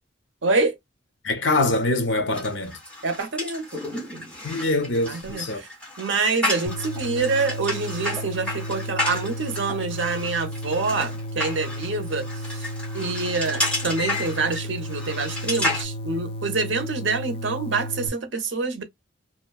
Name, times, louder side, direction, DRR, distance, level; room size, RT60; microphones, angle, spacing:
voice 1, 0.4-0.8 3.0-3.8 5.0-5.7 6.0-12.7 12.9-18.8, right 4 dB, 70° right, 0.7 m, -26 dB
voice 2, 1.2-2.8 4.4-5.6, left 2 dB, 70° left, 0.7 m, -24 dB
sound 1, 2.3-15.8, left 1 dB, 5° left, 1.0 m, -32 dB
sound 2, 6.7-18.1, equal, 30° left, 0.3 m, -33 dB
2.9 x 2.1 x 2.2 m
head